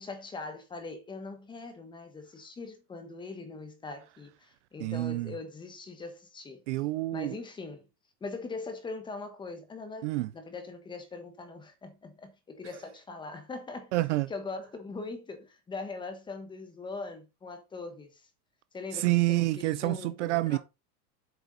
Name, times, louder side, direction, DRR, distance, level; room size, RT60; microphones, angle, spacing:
voice 1, 0.0-6.6 7.1-7.9 8.2-13.9 14.3-18.3 18.7-20.6, left 3 dB, 10° left, 1.2 m, -41 dB
voice 2, 4.8-5.3 6.7-7.3 10.0-10.3 13.9-14.3 18.9-20.6, right 19 dB, 50° right, 0.5 m, -28 dB
8.0 x 6.8 x 4.0 m
supercardioid pair, 170°, 46 cm